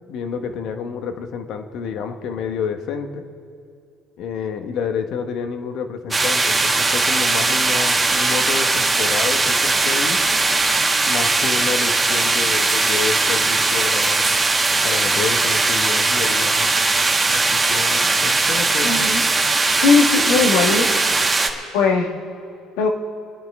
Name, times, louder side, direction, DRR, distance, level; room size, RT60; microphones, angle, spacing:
voice 1, 0.1-3.2 4.2-10.2 11.1-14.4 14.8-16.6 17.3-18.9, left 6 dB, 65° left, 7 dB, 1.2 m, -29 dB
sound 1, 6.1-21.5, right 3 dB, 20° right, 1.8 m, -19 dB
voice 2, 18.8-19.2 19.8-20.9 21.7-22.1 22.8-22.9, left 5 dB, 85° left, 2 dB, 1.7 m, -18 dB
28.5 x 10.0 x 3.6 m, 2.5 s
supercardioid pair, 95°, 0 cm